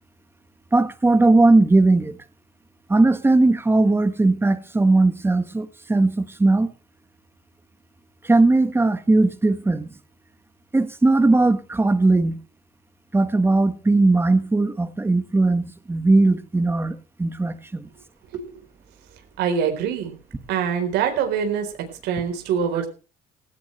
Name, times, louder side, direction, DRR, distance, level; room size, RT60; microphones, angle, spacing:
voice 1, 0.7-2.2 2.9-6.7 8.2-9.9 10.7-12.4 13.1-17.9, right 2 dB, 15° right, 1.6 m, -18 dB
voice 2, 19.4-20.1 20.5-22.9, right 7 dB, 85° right, 4.3 m, -24 dB
17.0 x 16.5 x 3.4 m
cardioid pair, 110°, 17 cm